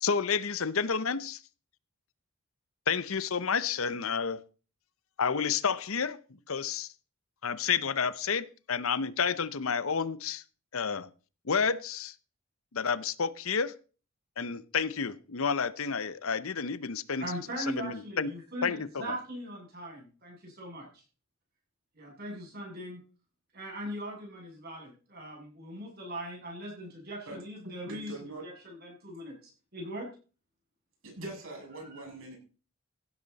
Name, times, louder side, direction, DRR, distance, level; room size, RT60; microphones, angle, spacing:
voice 1, 0.0-1.4 2.9-4.4 5.2-6.9 7.4-10.4 10.7-11.1 11.4-12.1 12.7-13.7 14.4-17.3 17.6-18.3 18.6-19.2, left 6 dB, 70° left, 0.9 m, -30 dB
voice 2, 17.2-21.0 21.9-23.0 23.5-28.1 28.4-30.1 31.7-32.0, equal, 45° right, 8.0 m, -40 dB
voice 3, 27.6-28.5 31.0-32.4, right 2 dB, 65° right, 7.5 m, -42 dB
16.0 x 12.0 x 4.1 m
head